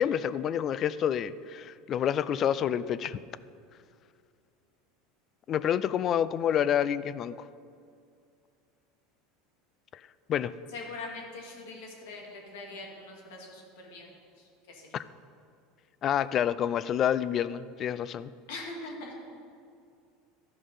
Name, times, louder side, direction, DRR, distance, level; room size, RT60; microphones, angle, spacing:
voice 1, 0.0-3.2 5.5-7.3 10.3-10.5 14.9-15.0 16.0-18.3, left 9 dB, 40° left, 16 dB, 0.3 m, -28 dB
voice 2, 10.7-14.9 18.5-19.1, left 2 dB, 75° left, 0 dB, 2.2 m, -42 dB
13.5 x 5.3 x 5.5 m, 2.4 s
supercardioid pair, 125°, 0 cm